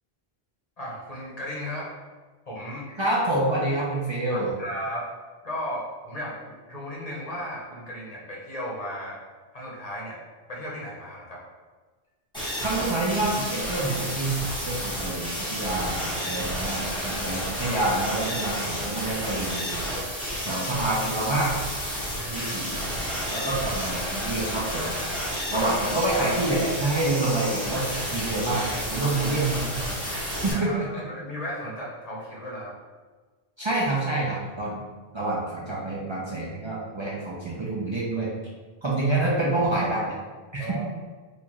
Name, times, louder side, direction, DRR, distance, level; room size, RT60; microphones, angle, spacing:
voice 1, 0.8-1.9 2.5-2.8 4.3-5.1 5.4-9.2 9.5-10.2 10.5-11.4 22.2-22.7 25.6-25.7 30.5-32.7 40.6-40.9, equal, 40° left, -4 dB, 0.8 m, -35 dB
voice 2, 3.0-4.5 12.6-19.7 20.5-21.5 22.3-22.8 23.3-25.0 25.5-27.8 28.1-28.6 28.9-29.8 30.4-31.0 33.6-34.9 35.1-38.3 38.8-40.1 40.5-40.8, right 2 dB, 35° right, -6 dB, 0.5 m, -27 dB
sound 1, 12.3-30.5, equal, 5° left, 1.2 m, -31 dB
4.2 x 2.4 x 2.9 m, 1.4 s
omnidirectional pair, 1.0 m